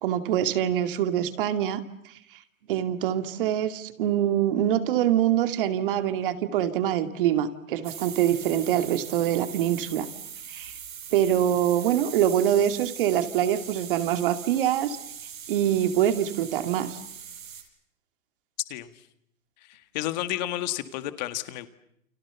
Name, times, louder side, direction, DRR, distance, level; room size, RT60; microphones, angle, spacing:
voice 1, 0.0-1.8 2.7-10.1 10.5-10.8 11.1-15.0 15.5-17.0, right 11 dB, 40° right, 9 dB, 2.5 m, -24 dB
sound 1, 7.8-17.6, right 8 dB, 85° right, 6.9 m, -41 dB
voice 2, 19.6-21.7, left 14 dB, 35° left, 11 dB, 1.9 m, -31 dB
30.0 x 28.0 x 7.0 m, 0.75 s
hypercardioid pair, 165°, 40 cm